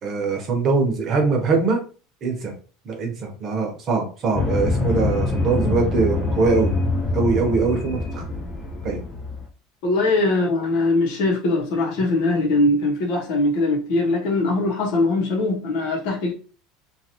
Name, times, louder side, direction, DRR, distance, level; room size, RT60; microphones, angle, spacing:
voice 1, 0.0-1.8 2.2-2.5 2.8-6.7 7.1-8.2 8.8-9.0, right 4 dB, 30° right, 0.8 m, -22 dB
sound 1, 4.3-9.4, left 3 dB, 20° left, 0.5 m, -25 dB
voice 2, 9.8-16.3, left 2 dB, 60° left, 1.0 m, -21 dB
2.7 x 2.5 x 2.9 m
cardioid pair, 155°, 0 cm